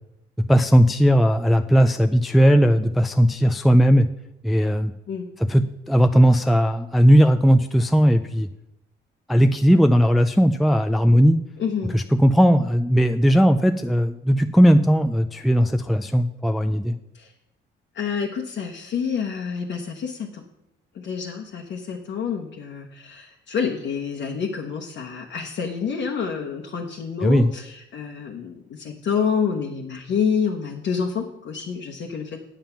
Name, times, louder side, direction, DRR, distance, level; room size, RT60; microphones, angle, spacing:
voice 1, 0.5-4.1 4.4-4.9 5.4-8.5 9.3-11.4 11.9-16.9 27.2-27.5, equal, ahead, 6 dB, 0.4 m, -17 dB
voice 2, 11.6-12.0 17.1-17.3 17.9-20.4 20.9-32.4, left 6 dB, 65° left, 0 dB, 1.1 m, -28 dB
9.0 x 7.2 x 5.8 m, 0.86 s
cardioid pair, 90°, 20 cm